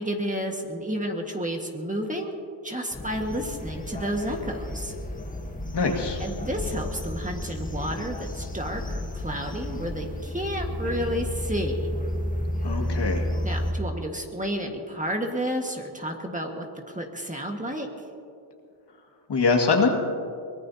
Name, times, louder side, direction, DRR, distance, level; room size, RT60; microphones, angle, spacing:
voice 1, 0.0-2.3 2.6-4.9 6.2-11.9 13.4-17.9, equal, 15° right, 2 dB, 1.7 m, -31 dB
sound 1, 2.9-13.7, left 1 dB, 15° left, 1.3 m, -32 dB
voice 2, 5.7-6.2 12.6-13.3 19.3-19.9, left 4 dB, 55° left, 1 dB, 2.1 m, -23 dB
24.0 x 19.0 x 2.8 m, 2.5 s
cardioid pair, 90°, 48 cm